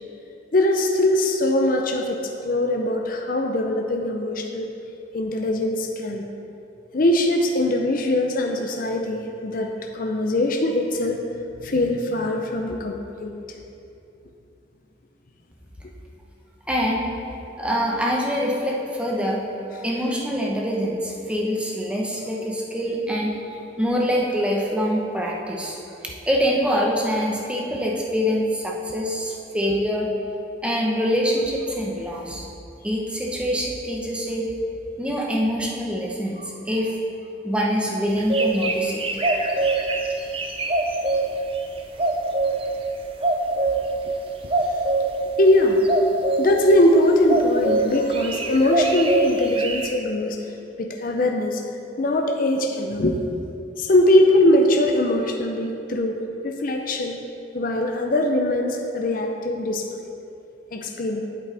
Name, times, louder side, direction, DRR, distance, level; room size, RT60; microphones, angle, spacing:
voice 1, 0.5-4.7 5.1-6.3 6.9-11.2 11.6-13.3 36.4-36.5 39.3-39.4 45.4-45.8 46.4-50.4 50.8-51.6 52.0-53.2 53.8-57.2 57.5-59.8 60.7-61.2, left 1 dB, 45° left, 2 dB, 0.5 m, -21 dB
voice 2, 16.7-17.1 17.6-19.4 19.8-23.3 23.8-25.8 26.3-30.1 30.6-32.5 32.8-34.4 35.0-36.4 36.7-36.9 37.4-39.0, equal, 5° right, -3 dB, 0.9 m, -24 dB
sound 1, 38.1-41.2 42.0-42.6 43.2-43.8 44.5-45.1 45.8-46.5 47.3-47.8 48.1-49.9, right 2 dB, 30° right, 0.6 m, -22 dB
8.6 x 8.0 x 3.4 m, 2.7 s
head